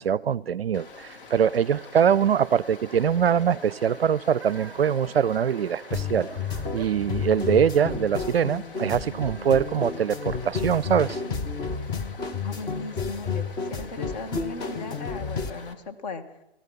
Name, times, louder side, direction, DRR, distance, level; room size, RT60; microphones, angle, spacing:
voice 1, 0.0-6.3 6.7-11.2, right 8 dB, 70° right, 22 dB, 0.5 m, -23 dB
Stream, 0.7-15.7, left 3 dB, 60° left, 2.0 m, -46 dB
sound 1, 1.6-11.2, right 6 dB, 5° right, 1.0 m, -49 dB
sound 2, 5.9-15.5, left 5 dB, 10° left, 0.6 m, -31 dB
voice 2, 12.4-16.2, left 3 dB, 40° left, 7 dB, 1.6 m, -37 dB
15.0 x 15.0 x 5.6 m, 0.86 s
figure-of-eight pair, 120°, 31 cm